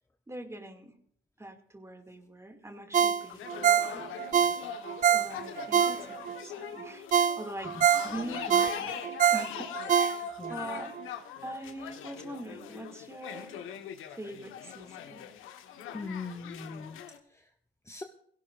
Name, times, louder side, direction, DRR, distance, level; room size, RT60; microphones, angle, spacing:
voice 1, 0.3-0.9 1.4-4.4 5.0-7.7 8.0-10.9 11.4-13.6 14.1-15.3, right 1 dB, 15° right, 4 dB, 2.5 m, -43 dB
Ringtone, 2.9-6.4 6.8-6.9 7.1-10.6 11.0-11.1, right 8 dB, 40° right, 0.6 m, -25 dB
sound 1, 3.2-17.2, left 9 dB, 85° left, 1.5 m, -42 dB
voice 2, 15.9-17.0 17.3-17.5 17.8-18.0, left 3 dB, 15° left, 5 dB, 1.0 m, -40 dB
17.0 x 17.0 x 2.6 m, 0.66 s
cardioid pair, 90°, 20 cm